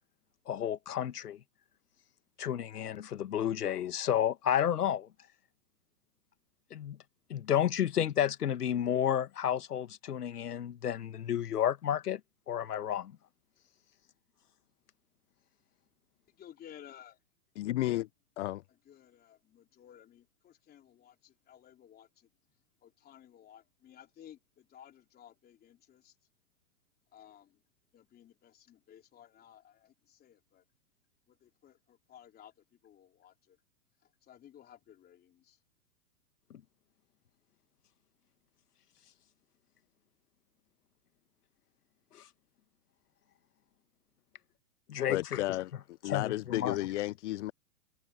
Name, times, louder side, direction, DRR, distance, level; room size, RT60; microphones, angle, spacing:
voice 1, 0.4-1.4 2.4-5.1 6.7-7.0 7.3-12.2 12.5-13.1 36.5-36.6 42.1-42.3 44.9-45.4 46.0-46.8, left 10 dB, 90° left, 1.7 m, -31 dB
voice 2, 16.3-17.2 17.9-18.1 18.9-22.3 22.8-26.1 27.1-27.6 27.9-30.6 31.3-32.5 32.8-33.6 34.2-35.6, left 10 dB, 20° left, 3.8 m, -56 dB
voice 3, 17.6-18.1 18.4-18.6 45.1-47.5, left 16 dB, 55° left, 0.5 m, -33 dB
hypercardioid pair, 140°, 45 cm